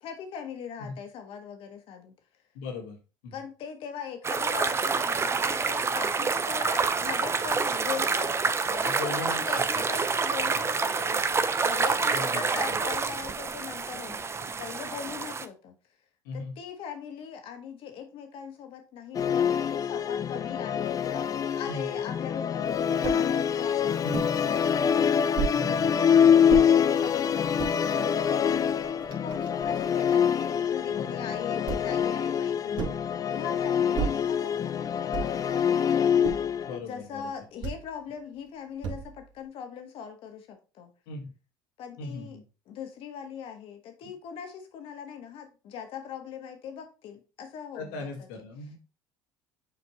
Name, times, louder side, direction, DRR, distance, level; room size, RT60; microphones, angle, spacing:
voice 1, 0.0-2.1 3.3-8.4 8.6-15.7 16.3-35.8 36.9-40.9 41.8-42.4 42.7-48.1, left 7 dB, 60° left, 5 dB, 1.5 m, -40 dB
voice 2, 2.5-3.0 3.2-3.4 8.9-9.6 12.1-12.8 16.2-16.6 21.7-21.9 24.0-24.4 25.5-25.9 31.0-31.3 32.6-32.8 36.6-37.3 41.1-41.3 42.0-42.4 47.7-48.8, left 3 dB, 80° left, 3 dB, 1.8 m, -38 dB
sound 1, 4.2-15.5, right 4 dB, 25° right, 0.6 m, -27 dB
Musical instrument, 19.1-36.8, left 8 dB, 35° left, 0.5 m, -25 dB
sound 2, 23.0-23.3 24.1-24.4 25.4-25.6 26.5-26.7 27.4-27.8 28.5-28.6 28.8-29.8 31.7-32.0 32.8-33.1 33.9-34.3 35.1-35.5 36.2-36.6 37.6-37.9 38.8-39.3, right 7 dB, 55° right, 2.0 m, -33 dB
7.3 x 4.2 x 3.1 m, 0.32 s
hypercardioid pair, 75°, 10 cm